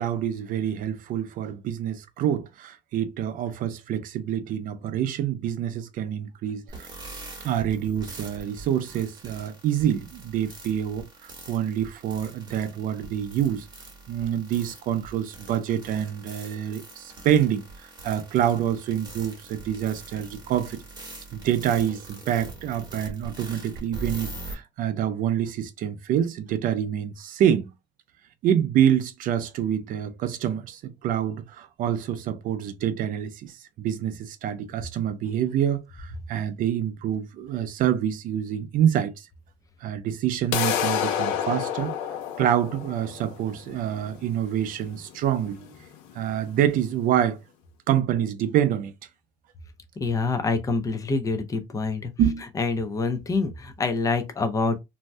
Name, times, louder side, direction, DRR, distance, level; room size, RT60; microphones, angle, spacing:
voice 1, 0.0-6.9 7.4-13.7 14.1-20.8 21.3-27.7 28.4-39.3 39.8-41.9 42.4-45.7 46.1-47.4 47.9-48.9 52.2-52.4, right 10 dB, 45° right, 0.5 m, -26 dB
sound 1, 6.7-24.5, right 3 dB, 20° right, 1.1 m, -42 dB
sound 2, 40.5-46.5, left 9 dB, 85° left, 0.9 m, -30 dB
voice 2, 50.0-52.1 52.6-54.8, left 3 dB, 15° left, 0.5 m, -26 dB
2.6 x 2.2 x 3.2 m
cardioid pair, 140°, 20 cm